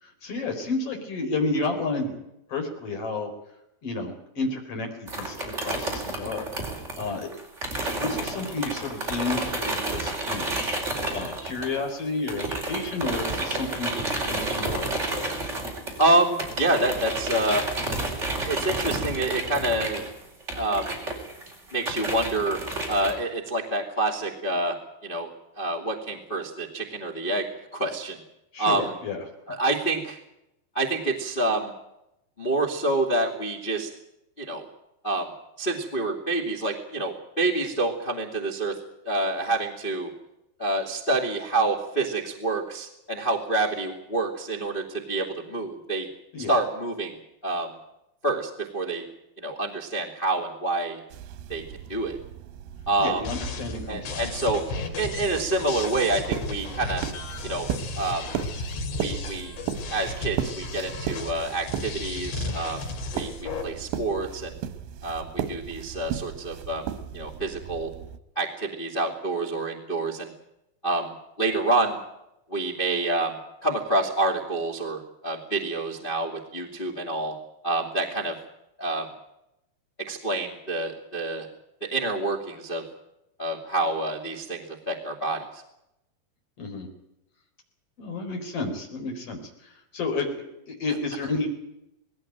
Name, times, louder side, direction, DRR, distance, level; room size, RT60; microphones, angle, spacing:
voice 1, 0.0-2.1 2.5-3.3 3.8-6.7 7.0-7.3 7.8-10.5 11.1-15.4 28.5-29.2 46.3-46.5 53.0-54.4 86.6-86.9 88.0-90.3 90.7-91.5, left 3 dB, 35° left, 3 dB, 5.0 m, -31 dB
sound 1, 5.1-12.0 12.3-23.1, right 2 dB, 15° right, 4.6 m, -31 dB
voice 2, 16.0-17.7 18.4-20.1 20.5-21.0 21.7-22.6 22.9-24.8 25.0-25.3 25.5-27.5 27.7-28.2 28.6-28.9 29.5-30.2 30.7-31.7 32.4-33.9 34.4-34.6 35.0-35.3 35.6-38.8 39.0-40.1 40.6-46.1 46.5-47.1 47.4-47.7 48.2-49.0 49.4-51.0 51.5-51.6 51.9-52.2 52.8-53.2 53.9-54.6 55.0-57.0 57.4-57.7 58.0-58.2 59.0-59.6 59.9-62.9 63.1-64.5 65.0-66.9 67.1-67.9 68.3-70.3 70.8-71.1 71.4-72.0 72.5-77.3 77.6-78.3 78.8-79.1 80.1-81.5 81.9-82.8 83.4-85.6, right 2 dB, 20° left, -1 dB, 1.7 m, -27 dB
sound 2, 51.1-68.2, right 9 dB, 90° right, 3.5 m, -36 dB
sound 3, 53.2-63.6, left 3 dB, 85° left, 5.5 m, -35 dB
20.5 x 17.0 x 9.1 m, 0.85 s
omnidirectional pair, 5.2 m